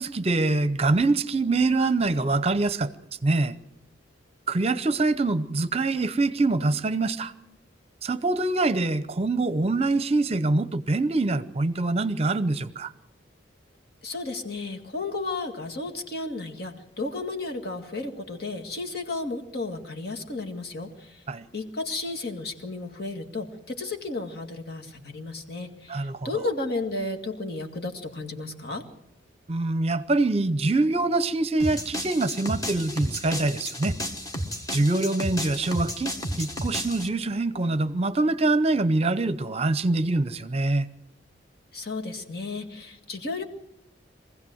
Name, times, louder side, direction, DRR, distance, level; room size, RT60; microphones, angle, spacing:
voice 1, 0.0-2.9 3.2-3.6 4.5-7.3 8.0-12.9 21.3-21.5 25.9-26.4 29.5-34.0 34.7-40.9, right 2 dB, 35° right, 14 dB, 0.7 m, -24 dB
voice 2, 14.0-21.2 21.5-28.9 41.7-43.4, left 3 dB, 55° left, 3 dB, 2.0 m, -33 dB
sound 1, 31.6-37.1, equal, 20° left, 1.3 m, -32 dB
23.0 x 16.0 x 7.9 m, 0.89 s
head